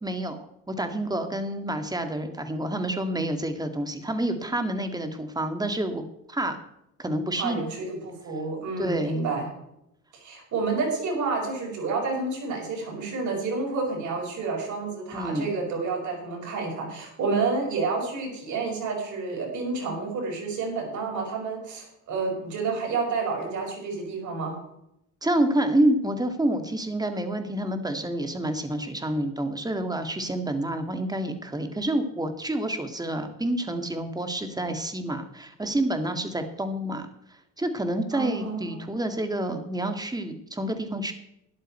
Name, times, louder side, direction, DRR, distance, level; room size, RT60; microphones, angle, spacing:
voice 1, 0.0-6.0 6.3-6.6 7.0-7.6 8.8-9.3 15.1-15.5 25.2-37.1 37.6-41.1, right 1 dB, 15° right, 7 dB, 2.1 m, -28 dB
voice 2, 7.4-9.5 10.1-24.6 38.1-38.7, right 4 dB, 75° right, -1 dB, 5.8 m, -29 dB
13.0 x 11.0 x 4.4 m, 0.80 s
cardioid pair, 90°, 30 cm